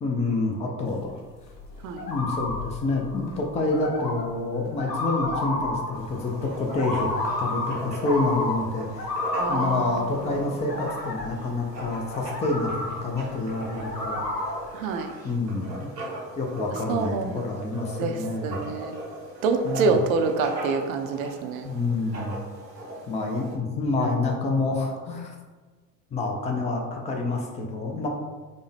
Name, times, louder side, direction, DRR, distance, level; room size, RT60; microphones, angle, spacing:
voice 1, 0.0-1.2 2.1-9.1 9.5-14.2 15.2-15.9 16.4-18.6 19.6-20.0 21.6-22.3 23.1-25.3 26.1-28.1, left 3 dB, 15° left, 1 dB, 0.4 m, -28 dB
sound 1, 0.9-15.1, left 2 dB, 85° left, 0.7 m, -32 dB
Writing, 5.9-23.5, right 1 dB, 90° right, 0.8 m, -39 dB
voice 2, 9.4-10.5 14.7-15.1 16.9-17.4 18.0-19.0 19.4-21.7, right 4 dB, 55° right, 5 dB, 0.6 m, -27 dB
5.1 x 2.1 x 3.4 m, 1.3 s
figure-of-eight pair, 65°, 49 cm